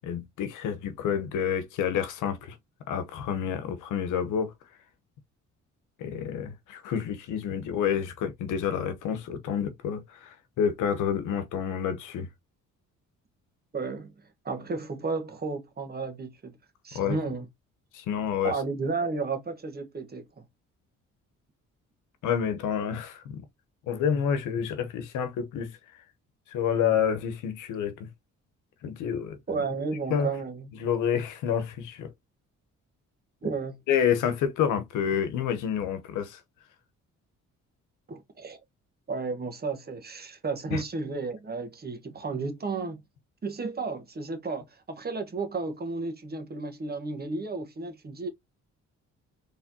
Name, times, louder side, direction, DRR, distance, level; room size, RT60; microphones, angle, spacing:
voice 1, 0.0-2.6 2.9-4.5 6.0-12.3 16.9-17.2 17.9-18.5 22.2-23.4 23.9-25.8 26.5-28.1 28.8-29.6 30.1-30.3 30.8-32.1 33.9-36.4 40.7-40.8, left 8 dB, 85° left, 1.0 m, -29 dB
voice 2, 13.7-14.1 14.4-16.6 16.8-17.5 18.4-20.2 29.5-30.7 33.4-33.8 38.1-38.6 39.1-43.0 43.4-48.3, right 4 dB, 30° right, 1.3 m, -33 dB
4.2 x 3.3 x 2.7 m
cardioid pair, 90°, 30 cm